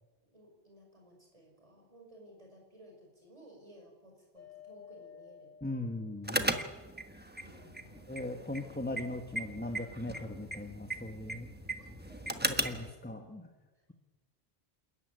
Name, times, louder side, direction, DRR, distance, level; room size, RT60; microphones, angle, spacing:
voice 1, 0.2-5.5 7.3-8.0 11.8-12.9 13.7-13.9, right 1 dB, 30° right, 0 dB, 5.6 m, -57 dB
sound 1, 4.4-6.3 7.5-8.7 9.6-11.0, left 6 dB, 50° left, 2.3 m, -55 dB
voice 2, 5.6-6.5 8.1-11.5 12.6-13.5, left 2 dB, 10° left, 5 dB, 1.2 m, -39 dB
sound 2, 6.2-12.9, right 1 dB, 10° right, 1.3 m, -37 dB
28.0 x 14.0 x 9.6 m, 1.3 s
omnidirectional pair, 1.1 m